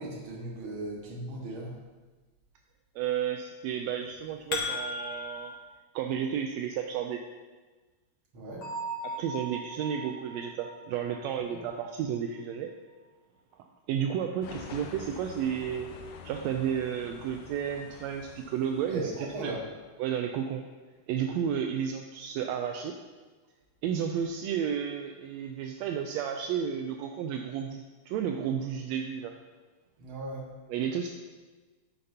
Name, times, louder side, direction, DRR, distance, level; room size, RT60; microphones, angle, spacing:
voice 1, 0.0-1.8 8.3-8.7 11.4-11.6 18.9-19.6 30.0-30.5, right 2 dB, 50° right, -2 dB, 2.2 m, -37 dB
voice 2, 2.9-5.5 5.9-7.2 9.0-12.7 13.9-15.9 16.2-19.1 19.4-19.5 20.0-20.6 21.1-23.0 23.8-29.3 30.7-31.1, right 8 dB, 80° right, 4 dB, 1.6 m, -32 dB
sound 1, 4.0-5.5, left 4 dB, 45° left, 1.5 m, -34 dB
Bell, 8.6-12.3, right 3 dB, 65° left, 3.4 m, -40 dB
sound 2, 14.4-19.3, left 6 dB, 85° left, 2.1 m, -47 dB
10.5 x 10.0 x 2.8 m, 1.3 s
omnidirectional pair, 3.4 m